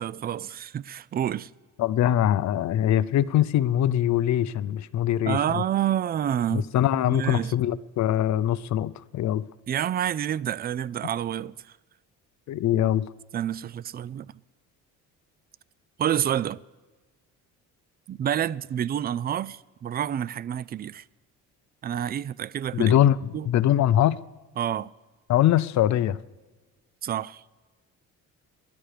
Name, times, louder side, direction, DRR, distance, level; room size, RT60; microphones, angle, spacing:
voice 1, 0.0-1.5 5.3-6.7 7.1-7.5 9.7-11.6 13.3-14.3 16.0-16.6 18.1-21.0 21.8-23.0 23.3-23.5 24.6-24.9 27.0-27.4, right 10 dB, 30° right, 0.3 m, -28 dB
voice 2, 1.8-5.6 6.5-9.4 12.5-13.1 22.7-23.2 23.5-24.2 25.3-26.2, left 11 dB, 55° left, 0.6 m, -22 dB
27.0 x 11.5 x 3.4 m
cardioid pair, 90°, 34 cm